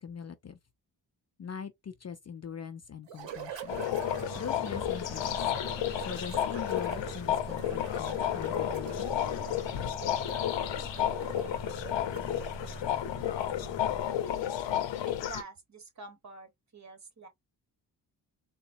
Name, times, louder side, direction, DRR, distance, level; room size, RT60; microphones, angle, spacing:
voice 1, 0.0-0.6 1.4-3.8 4.3-5.4 6.0-9.1, left 7 dB, 40° left, 0.5 m, -42 dB
sound 1, 3.1-13.0, right 8 dB, 90° right, 0.8 m, -45 dB
sound 2, 3.7-15.4, left 11 dB, 85° left, 0.7 m, -32 dB
sound 3, 4.0-14.0, left 1 dB, 5° right, 2.7 m, -44 dB
voice 2, 15.1-17.3, right 3 dB, 40° right, 1.3 m, -48 dB
3.8 x 2.2 x 2.6 m
cardioid pair, 75°, 43 cm